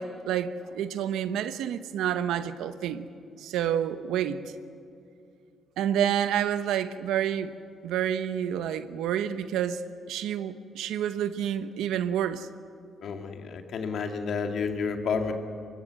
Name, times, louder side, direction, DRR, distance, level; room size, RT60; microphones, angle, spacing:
voice 1, 0.0-3.1 3.4-4.4 5.8-7.5 7.8-12.5, right 9 dB, 85° right, 1.0 m, -29 dB
voice 2, 13.0-15.3, left 5 dB, 65° left, 2.4 m, -30 dB
24.0 x 21.0 x 7.7 m
cardioid pair, 90°, 0 cm